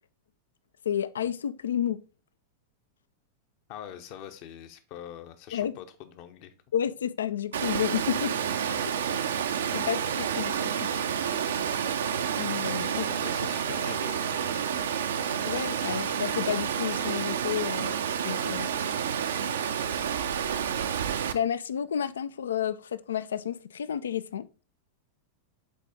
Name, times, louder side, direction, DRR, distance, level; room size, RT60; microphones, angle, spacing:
voice 1, 0.9-2.0 5.5-5.7 6.7-8.3 8.6-8.8 9.7-10.5 10.8-10.9 12.4-13.1 15.4-18.0 18.2-18.7 21.3-24.5, left 9 dB, 65° left, 0.4 m, -31 dB
voice 2, 3.7-6.5 12.9-14.8, left 10 dB, 45° left, 0.8 m, -44 dB
Water, 7.5-21.3, right 8 dB, 65° right, 0.5 m, -29 dB
7.6 x 4.1 x 3.7 m
figure-of-eight pair, 90°, 0 cm